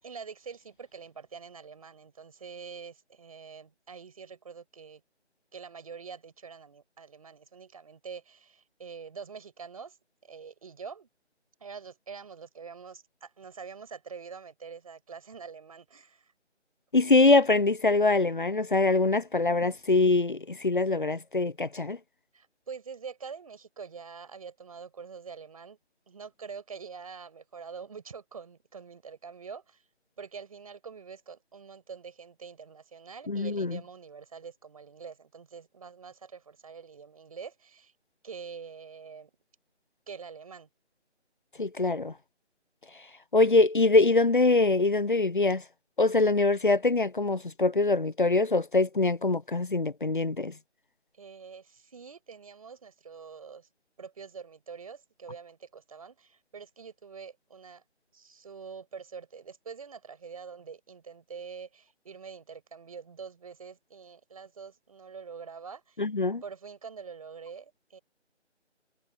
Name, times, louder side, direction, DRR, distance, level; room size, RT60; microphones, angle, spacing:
voice 1, 0.0-5.0 5.5-10.0 10.2-11.1 11.6-16.3 22.3-25.8 26.1-29.8 30.2-37.9 38.2-39.3 40.1-40.7 51.2-53.7 54.0-57.8 58.1-66.0 66.4-68.0, right 6 dB, 30° right, 5.9 m, -45 dB
voice 2, 16.9-22.0 33.3-33.8 41.6-42.1 43.3-45.6 46.0-50.5 66.0-66.4, left 3 dB, 45° left, 0.6 m, -24 dB
figure-of-eight pair, 165°, 35 cm